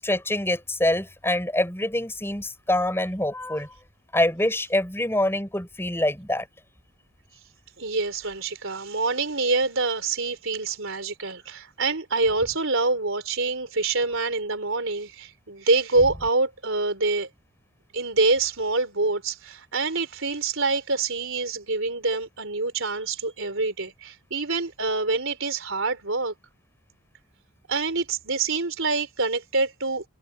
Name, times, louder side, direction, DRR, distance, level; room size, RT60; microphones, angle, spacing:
voice 1, 0.0-3.7 4.1-6.5, left 1 dB, 10° left, 7.2 m, -25 dB
voice 2, 7.8-17.3 17.9-26.3 27.7-30.0, right 3 dB, 60° right, 4.1 m, -26 dB
head